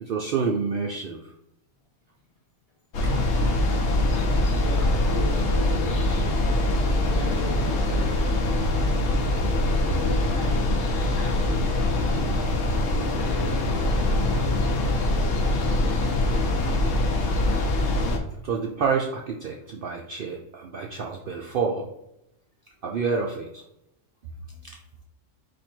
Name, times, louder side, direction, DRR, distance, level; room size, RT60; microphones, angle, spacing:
voice 1, 0.0-1.2 18.4-21.9 22.8-23.6 24.6-24.8, right 5 dB, 60° right, 0 dB, 0.6 m, -28 dB
sound 1, 2.9-18.2, left 1 dB, 65° left, 1.0 m, -23 dB
voice 2, 4.6-6.4 6.6-8.5 9.7-10.6 10.9-12.7 12.9-15.9, left 1 dB, 35° left, -1 dB, 0.9 m, -39 dB
4.5 x 2.7 x 4.3 m, 0.81 s
omnidirectional pair, 1.3 m